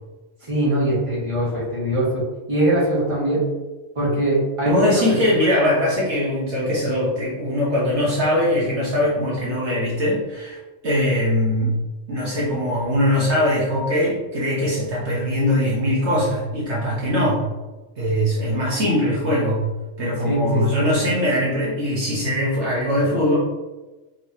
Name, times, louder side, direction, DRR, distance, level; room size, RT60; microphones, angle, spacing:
voice 1, 0.5-2.2 2.5-3.4 3.9-4.8 5.1-5.5 20.2-20.6, right 1 dB, 25° right, -8 dB, 1.7 m, -22 dB
voice 2, 4.7-10.6 10.8-11.8 12.1-17.4 18.0-19.6 20.0-23.4, left 1 dB, 65° right, -6 dB, 1.3 m, -21 dB
4.7 x 3.8 x 2.8 m, 1.2 s
omnidirectional pair, 1.3 m